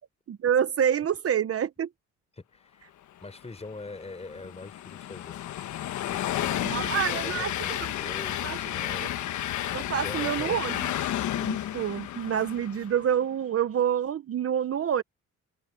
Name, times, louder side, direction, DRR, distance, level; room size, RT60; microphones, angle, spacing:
voice 1, 0.3-1.9 6.6-7.8 8.4-8.6 8.9-9.0 9.7-10.8 11.4-15.0, right 9 dB, 50° right, 1.0 m, -27 dB
voice 2, 2.4-5.4 6.0-9.2 9.9-10.6, left 3 dB, 20° left, 6.0 m, -43 dB
Train, 3.6-13.1, left 12 dB, 75° left, 1.2 m, -32 dB
cardioid pair, 90°, 30 cm